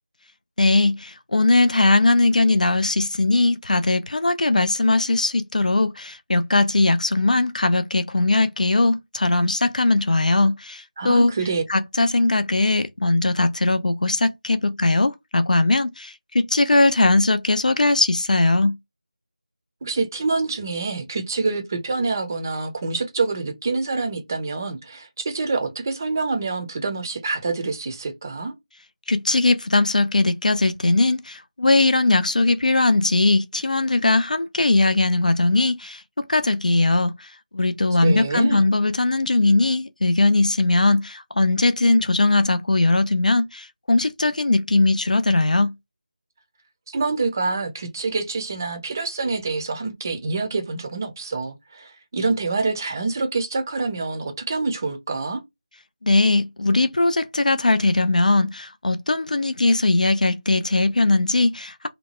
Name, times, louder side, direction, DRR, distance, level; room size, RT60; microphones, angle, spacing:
voice 1, 0.6-11.3 11.7-18.8 29.1-45.7 56.0-61.9, left 2 dB, 70° left, 0.4 m, -20 dB
voice 2, 11.0-11.6 19.8-28.5 38.0-38.7 46.9-55.4, right 3 dB, 25° right, 0.5 m, -26 dB
2.8 x 2.1 x 2.9 m
figure-of-eight pair, 170°, 4 cm